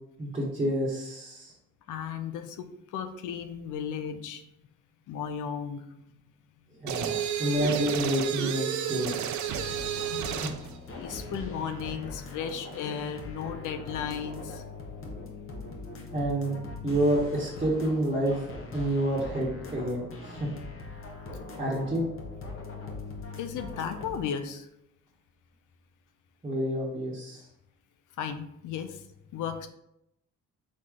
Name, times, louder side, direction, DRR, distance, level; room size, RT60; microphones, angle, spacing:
voice 1, 0.2-1.5 6.8-9.1 10.4-10.5 16.1-16.6 16.8-18.5 18.7-20.5 21.6-22.0 26.4-27.4, right 1 dB, 20° right, -8 dB, 1.2 m, -28 dB
voice 2, 1.9-4.4 5.1-5.9 7.1-7.2 9.9-10.5 10.9-14.6 15.8-15.9 23.4-24.7 28.2-29.1 29.3-29.7, left 7 dB, 80° left, 8 dB, 0.6 m, -35 dB
sound 1, 6.9-10.6, right 10 dB, 70° right, 0.5 m, -31 dB
sound 2, 9.5-24.3, left 3 dB, 45° left, 1.1 m, -41 dB
4.3 x 3.1 x 3.7 m, 0.80 s
cardioid pair, 90°, 30 cm